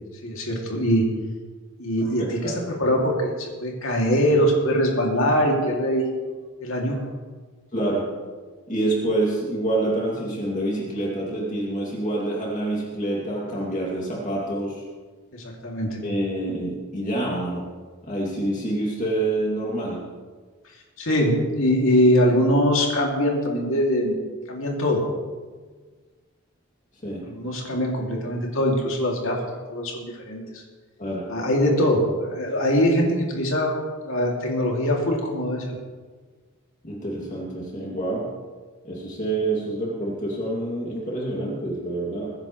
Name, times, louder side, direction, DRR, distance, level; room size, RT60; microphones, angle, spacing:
voice 1, 0.2-1.1 1.8-3.3 3.6-6.0 6.6-7.0 15.3-16.0 21.0-24.2 24.5-25.0 27.2-29.4 29.7-30.4 31.3-35.6, equal, 65° left, -1 dB, 2.6 m, -22 dB
voice 2, 2.2-2.5 7.7-8.1 8.7-14.8 16.0-17.7 18.0-20.0 27.0-27.2 31.0-31.3 36.8-38.3 38.8-42.3, right 2 dB, 35° left, -4 dB, 2.5 m, -27 dB
22.0 x 10.5 x 3.2 m, 1.5 s
head